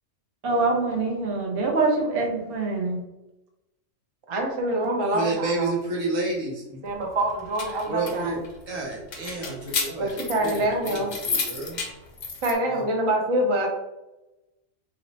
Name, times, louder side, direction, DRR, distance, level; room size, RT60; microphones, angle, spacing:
voice 1, 0.4-3.0, right 3 dB, 50° right, -1 dB, 0.9 m, -24 dB
voice 2, 4.3-5.7 6.7-8.4 10.0-11.1 12.4-13.7, right 1 dB, 35° right, 0 dB, 0.5 m, -25 dB
voice 3, 5.1-6.6 7.9-8.4 8.7-11.0 11.2-11.8 12.7-12.8, right 3 dB, 85° right, -2 dB, 1.3 m, -30 dB
sound 1, 7.3-12.5, left 5 dB, 55° left, 0.5 m, -32 dB
3.1 x 2.0 x 3.9 m, 0.96 s
omnidirectional pair, 1.3 m